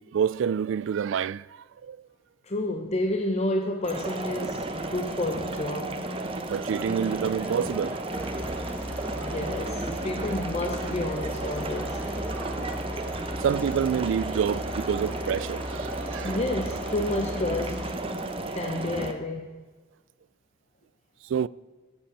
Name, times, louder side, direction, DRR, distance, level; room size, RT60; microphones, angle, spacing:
voice 1, 0.0-2.0 6.5-8.0 8.8-9.3 12.3-12.6 13.4-16.4 18.2-18.3 21.3-21.5, right 7 dB, 65° right, 0.3 m, -28 dB
voice 2, 2.4-6.0 9.1-12.0 16.2-17.9 18.6-19.5, left 1 dB, 35° left, 0.9 m, -30 dB
sound 1, 3.8-19.1, right 2 dB, 30° right, 1.0 m, -34 dB
sound 2, 6.8-13.6, right 1 dB, 10° right, 0.5 m, -42 dB
sound 3, 8.1-17.9, equal, 10° left, 1.2 m, -37 dB
12.5 x 8.5 x 8.6 m
head